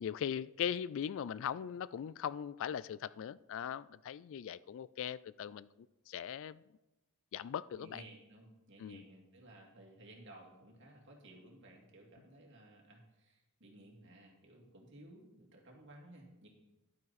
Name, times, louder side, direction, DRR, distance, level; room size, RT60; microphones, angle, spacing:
voice 1, 0.0-5.7 6.1-6.6 7.3-8.0 8.8-9.0, left 8 dB, 60° left, 18 dB, 0.3 m, -39 dB
voice 2, 7.8-16.5, right 1 dB, 55° right, 0 dB, 2.3 m, -57 dB
11.0 x 8.8 x 4.1 m, 0.99 s
head